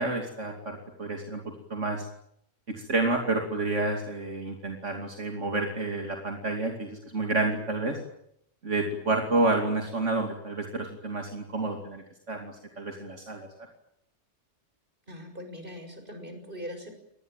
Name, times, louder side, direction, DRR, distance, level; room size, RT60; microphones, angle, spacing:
voice 1, 0.0-1.4 1.7-2.1 2.7-8.0 8.6-13.5, right 2 dB, 75° right, 3 dB, 3.0 m, -29 dB
voice 2, 15.1-16.9, equal, 45° right, 6 dB, 6.8 m, -41 dB
26.5 x 20.0 x 9.1 m, 0.76 s
omnidirectional pair, 1.3 m